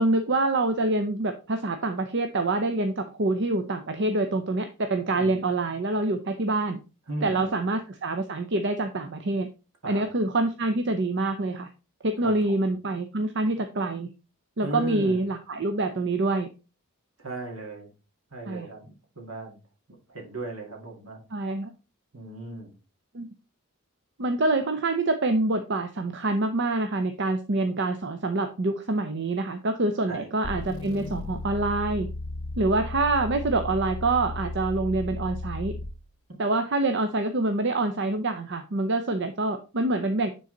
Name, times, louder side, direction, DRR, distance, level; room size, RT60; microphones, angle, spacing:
voice 1, 0.0-6.8 7.2-9.5 9.9-11.7 12.0-14.1 14.6-16.5 18.5-18.7 21.3-21.7 23.1-23.3 24.2-32.1 32.6-35.7 36.4-40.3, right 2 dB, 55° right, 7 dB, 0.6 m, -26 dB
voice 2, 7.1-7.6 9.8-10.0 12.2-12.6 14.6-15.2 17.2-17.9 18.3-19.6 20.1-21.2 22.1-22.7 30.1-30.3, right 2 dB, 70° right, 2 dB, 2.1 m, -37 dB
sound 1, 30.4-36.1, left 2 dB, 70° left, 0.9 m, -35 dB
9.4 x 3.9 x 3.8 m, 0.31 s
head